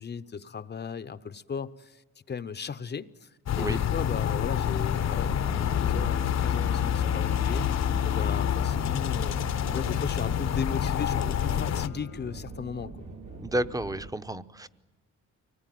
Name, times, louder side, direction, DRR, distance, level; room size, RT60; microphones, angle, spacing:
voice 1, 0.0-2.0 2.3-3.3 3.6-9.4 9.7-12.9, left 6 dB, 35° left, 12 dB, 0.7 m, -36 dB
sound 1, 3.5-11.9, left 9 dB, 60° left, 0.9 m, -27 dB
Wind instrument woodwind instrument, 4.3-12.9, left 8 dB, 90° left, 1.7 m, -48 dB
sound 2, 5.2-14.1, right 2 dB, 90° right, 3.8 m, -41 dB
voice 2, 13.4-14.7, right 1 dB, 10° right, 13 dB, 0.8 m, -31 dB
24.5 x 19.5 x 9.2 m, 1.2 s
cardioid pair, 90°, 30 cm